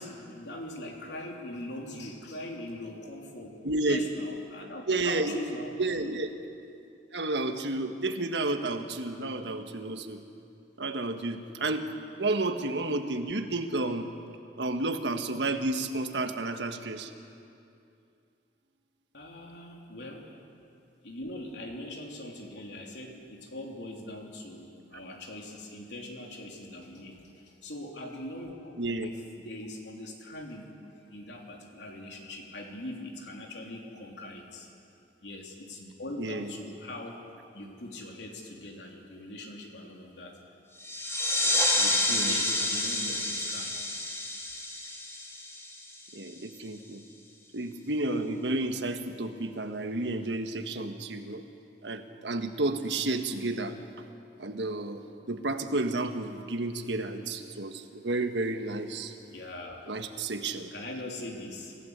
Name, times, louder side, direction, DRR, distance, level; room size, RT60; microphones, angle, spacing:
voice 1, 0.0-5.7 9.0-9.2 19.1-20.3 21.0-30.7 31.1-34.7 35.2-37.2 37.5-40.4 41.4-43.7 59.3-59.9 60.7-61.7, left 1 dB, 75° left, 1 dB, 3.5 m, -42 dB
voice 2, 3.6-4.0 4.9-5.4 5.8-6.3 7.1-10.2 10.8-11.9 12.2-14.1 14.6-17.1 28.8-29.1 36.2-36.5 42.1-42.3 46.1-47.0 47.5-51.4 51.8-54.0 54.4-59.1 59.9-60.7, right 2 dB, 85° right, 7 dB, 1.5 m, -31 dB
sound 1, 40.8-46.1, left 1 dB, 15° left, 2.5 m, -29 dB
27.5 x 16.0 x 8.2 m, 2.6 s
head